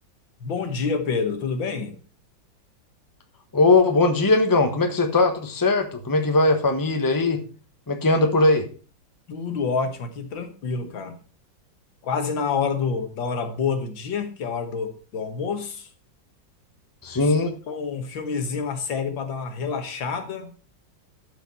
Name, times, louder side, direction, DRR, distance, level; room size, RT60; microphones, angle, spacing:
voice 1, 0.4-2.0 9.3-11.2 12.0-15.9 17.7-20.5, left 5 dB, 85° left, 6 dB, 2.2 m, -28 dB
voice 2, 3.5-7.4 7.9-8.7 17.0-17.5, left 2 dB, 15° left, 5 dB, 1.1 m, -20 dB
12.5 x 5.0 x 5.6 m, 0.37 s
omnidirectional pair, 2.0 m